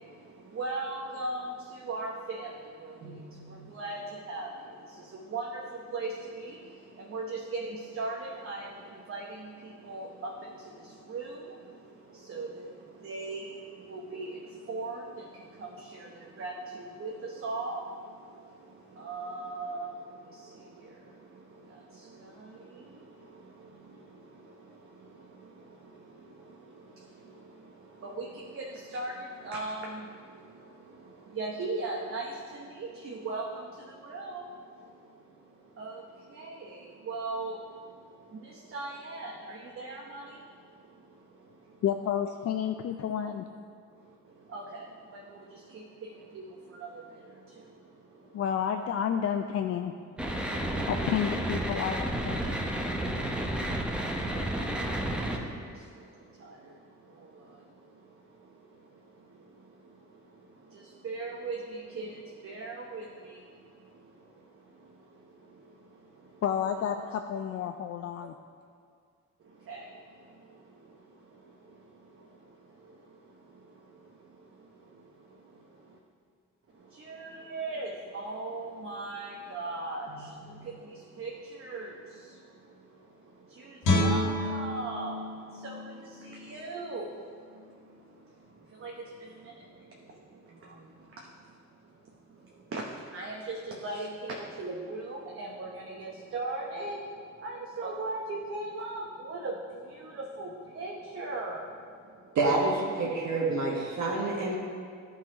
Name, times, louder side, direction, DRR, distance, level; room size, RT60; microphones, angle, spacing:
voice 1, 0.0-41.8 44.0-48.4 53.4-66.4 69.4-76.0 76.7-102.4, right 2 dB, 45° right, -1 dB, 0.9 m, -41 dB
voice 2, 41.8-43.4 48.3-49.9 50.9-52.6 66.4-68.3, left 8 dB, 50° left, 6 dB, 0.4 m, -30 dB
sound 1, 50.2-55.4, right 1 dB, 5° right, 0.9 m, -31 dB
Guitar, 83.8-87.0 87.4-87.6, left 1 dB, 85° left, 1.5 m, -30 dB
voice 3, 102.3-104.6, right 3 dB, 65° right, -3 dB, 1.5 m, -27 dB
11.5 x 4.1 x 4.9 m, 2.2 s
cardioid pair, 90°, 30 cm